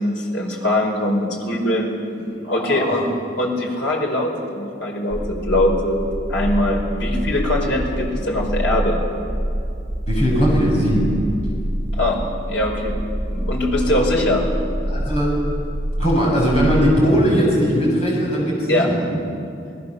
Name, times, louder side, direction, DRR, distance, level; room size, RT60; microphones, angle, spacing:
voice 1, 0.0-1.9 2.5-6.0 6.3-9.0 11.9-12.2 12.5-12.9 13.3-14.4 18.7-19.1, left 1 dB, 90° left, 0 dB, 5.1 m, -22 dB
voice 2, 2.4-2.9 10.1-11.0 14.9-15.3 16.0-19.0, equal, 35° left, -4 dB, 7.2 m, -19 dB
sound 1, 5.1-17.0, equal, 50° right, 1.3 m, -26 dB
28.0 x 20.0 x 6.9 m, 2.5 s
head